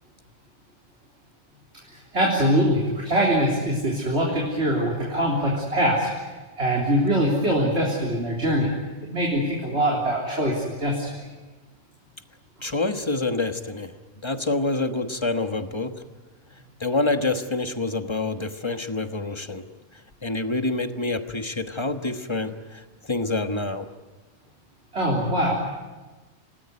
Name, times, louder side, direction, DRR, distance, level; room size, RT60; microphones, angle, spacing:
voice 1, 1.9-8.7 9.0-11.3 24.9-25.5, equal, 75° right, -3 dB, 4.0 m, -23 dB
voice 2, 12.6-13.9 14.2-15.9 16.8-19.6 20.2-22.8 23.1-23.9, left 2 dB, 25° left, 7 dB, 1.3 m, -27 dB
27.5 x 18.5 x 9.6 m, 1.2 s
omnidirectional pair, 1.1 m